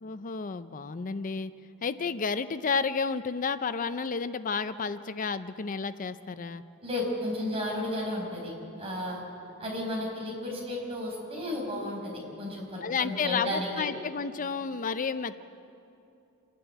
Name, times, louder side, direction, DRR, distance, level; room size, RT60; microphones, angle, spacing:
voice 1, 0.0-1.5 1.8-6.6 12.8-15.4, left 5 dB, 40° left, 13 dB, 0.5 m, -31 dB
voice 2, 6.8-8.5 8.8-9.2 9.6-13.8, left 1 dB, 25° right, -2 dB, 5.6 m, -33 dB
27.5 x 11.5 x 9.1 m, 2.7 s
head